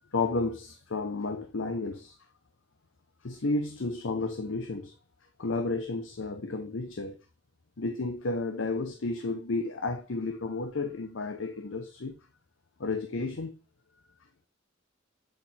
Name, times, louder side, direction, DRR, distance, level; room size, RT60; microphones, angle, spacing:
voice 1, 0.1-2.2 3.2-4.9 5.4-7.2 7.8-12.2 12.8-13.6, left 3 dB, 75° left, 0.7 m, -32 dB
7.9 x 4.3 x 3.5 m
head